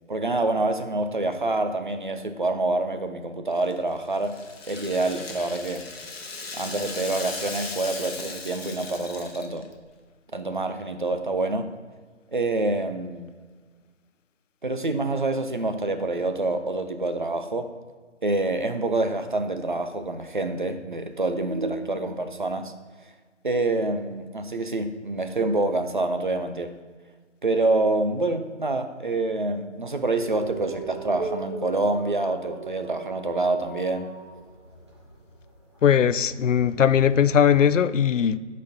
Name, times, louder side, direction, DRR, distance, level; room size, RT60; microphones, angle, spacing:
voice 1, 0.1-5.8 6.5-9.7 10.3-11.7 12.3-13.3 14.6-17.7 18.2-22.7 23.4-26.7 27.4-34.1, right 2 dB, 45° right, 0.5 m, -26 dB
Rattle (instrument), 3.6-9.8, left 3 dB, 55° left, 1.0 m, -37 dB
sound 1, 30.2-37.7, right 4 dB, 25° right, 0.8 m, -39 dB
voice 2, 35.8-38.4, left 8 dB, 85° left, 0.5 m, -19 dB
11.5 x 4.3 x 2.7 m
figure-of-eight pair, 165°, 37 cm